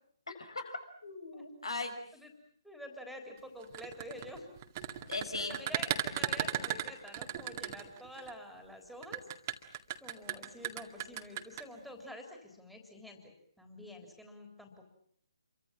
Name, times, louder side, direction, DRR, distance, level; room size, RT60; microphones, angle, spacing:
voice 1, 0.3-1.9 5.1-5.6, left 3 dB, 70° left, 8 dB, 5.6 m, -39 dB
voice 2, 2.6-4.5 5.4-9.2 10.0-14.8, left 1 dB, ahead, 4 dB, 3.6 m, -48 dB
sound 1, 3.6-8.3 9.0-11.6, right 12 dB, 30° right, 2.0 m, -36 dB
28.5 x 24.0 x 7.4 m, 0.65 s
figure-of-eight pair, 135°, 3 cm